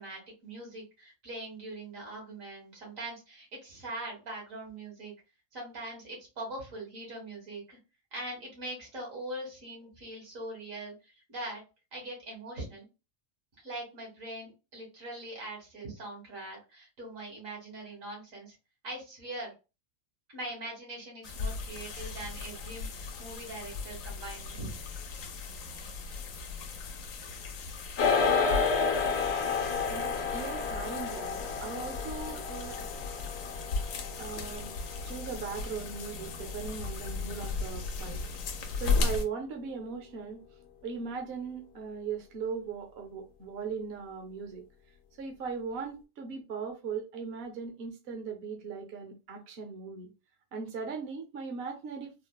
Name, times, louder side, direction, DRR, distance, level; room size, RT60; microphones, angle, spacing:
voice 1, 0.0-5.1 5.5-7.8 8.1-11.6 11.9-12.9 13.6-18.6 18.8-19.5 20.3-24.7, right 1 dB, 85° right, 2.1 m, -42 dB
sound 1, 21.2-39.2, left 4 dB, 85° left, 1.0 m, -36 dB
sound 2, 28.0-37.5, left 5 dB, 60° left, 0.9 m, -31 dB
voice 2, 29.9-32.8 34.2-34.7 35.0-38.2 38.8-40.4 40.8-44.6 45.2-50.1 50.5-52.1, right 5 dB, 55° right, 0.9 m, -39 dB
3.8 x 2.1 x 2.2 m
omnidirectional pair, 1.3 m